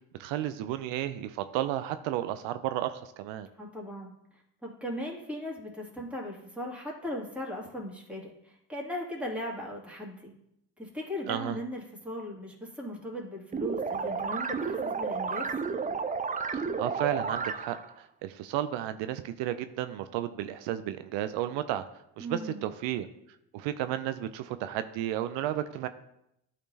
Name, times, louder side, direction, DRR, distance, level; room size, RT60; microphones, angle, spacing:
voice 1, 0.2-3.5 11.3-11.6 16.5-21.8 22.2-23.1 23.5-25.9, right 12 dB, 75° right, 11 dB, 0.5 m, -33 dB
voice 2, 3.6-10.3 10.8-15.5 22.2-22.7, left 1 dB, 5° right, -3 dB, 2.4 m, -38 dB
sound 1, 13.5-17.9, right 5 dB, 20° right, 0.4 m, -32 dB
12.0 x 4.2 x 2.8 m, 0.80 s
hypercardioid pair, 60°, 45 cm